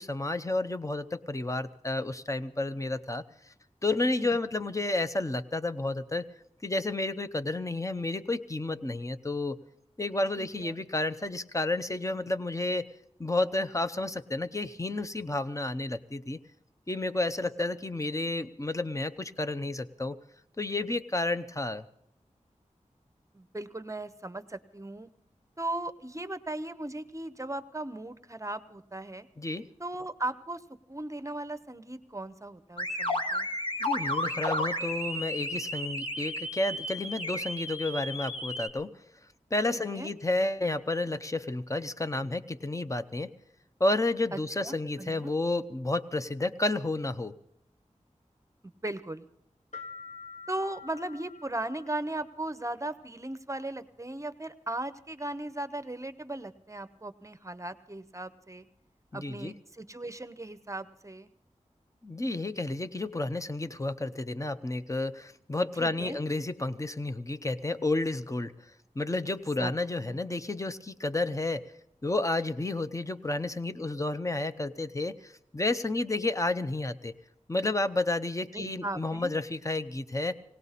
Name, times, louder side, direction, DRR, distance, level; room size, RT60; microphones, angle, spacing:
voice 1, 0.0-3.2 3.8-6.3 6.6-9.6 10.0-12.9 13.2-16.4 16.9-20.2 20.6-21.9 29.4-29.7 33.8-38.9 39.5-43.3 43.8-47.3 59.1-59.5 62.0-68.5 69.0-71.6 72.0-77.1 77.5-80.3, left 2 dB, 25° left, 11 dB, 0.7 m, -31 dB
voice 2, 10.4-10.7 23.3-25.1 25.6-29.3 29.8-30.6 30.9-33.5 39.7-40.1 44.3-44.4 44.6-45.3 48.8-49.3 50.5-58.6 59.1-61.3 65.8-66.2 69.6-70.2 78.5-79.3, right 1 dB, 25° right, 11 dB, 0.8 m, -37 dB
sound 1, 32.8-38.7, left 1 dB, 45° left, 1.6 m, -33 dB
sound 2, 49.7-52.4, left 5 dB, 65° left, 1.4 m, -46 dB
19.0 x 18.0 x 4.1 m, 0.74 s
wide cardioid pair, 60°, 13 cm